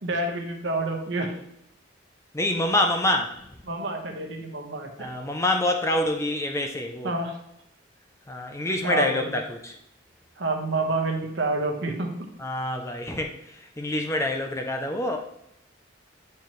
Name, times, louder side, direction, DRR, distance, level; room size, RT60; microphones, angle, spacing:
voice 1, 0.0-1.3 3.6-5.1 7.0-7.4 8.8-9.4 10.4-12.1, right 2 dB, 70° right, 2 dB, 1.2 m, -28 dB
voice 2, 2.3-3.4 5.0-7.1 8.3-9.7 12.4-15.2, left 1 dB, 15° left, 3 dB, 0.5 m, -26 dB
8.8 x 4.6 x 3.1 m, 0.76 s
head